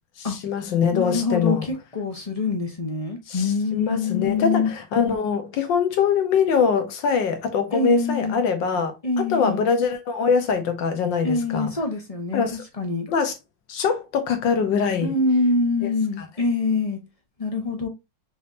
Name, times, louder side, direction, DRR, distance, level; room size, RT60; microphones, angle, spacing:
voice 1, 0.3-1.6 3.3-3.4 3.7-11.7 12.3-12.6 13.1-13.3 13.7-15.1, left 6 dB, 85° left, 1.7 m, -23 dB
voice 2, 0.9-4.7 7.7-8.4 9.0-9.6 11.2-13.1 15.0-17.0 17.4-17.9, left 3 dB, 25° left, 0.8 m, -25 dB
5.4 x 3.5 x 2.6 m
omnidirectional pair, 2.0 m